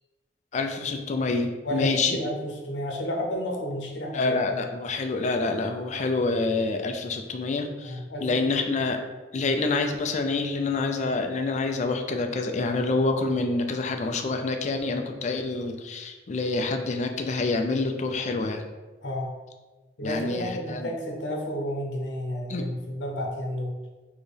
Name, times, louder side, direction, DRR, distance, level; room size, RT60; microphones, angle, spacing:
voice 1, 0.5-2.2 4.1-9.0 9.3-18.6 20.0-20.9 22.5-22.7, left 3 dB, 40° left, 5 dB, 0.4 m, -27 dB
voice 2, 1.6-4.4 7.8-8.4 9.3-9.5 16.6-16.7 19.0-19.3 20.0-23.7, equal, 85° left, 0 dB, 0.9 m, -31 dB
4.3 x 2.9 x 3.3 m, 1.2 s
head